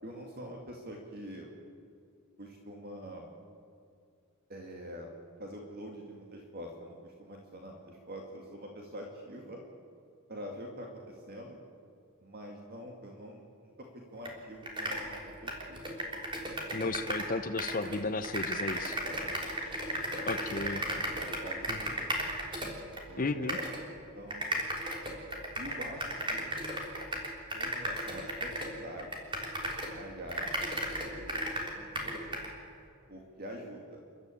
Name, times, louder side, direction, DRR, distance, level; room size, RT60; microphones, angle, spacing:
voice 1, 0.0-1.5 2.4-3.3 4.5-5.1 5.4-9.6 10.3-11.6 12.2-15.8 18.8-20.3 20.9-22.2 23.1-23.7 24.1-24.7 25.6-26.5 27.5-29.2 29.9-30.5 31.1-32.4 33.1-34.0, equal, 45° right, 1 dB, 2.3 m, -45 dB
sound 1, 14.2-14.3 14.6-17.3 17.6-23.0 23.5-23.8 24.3-30.0 30.3-32.5, right 1 dB, 20° right, 3.5 m, -35 dB
voice 2, 16.7-19.0 20.3-20.8 21.7-21.8 23.2-23.6, left 3 dB, 40° left, 8 dB, 0.6 m, -34 dB
29.5 x 12.5 x 8.6 m, 2.4 s
head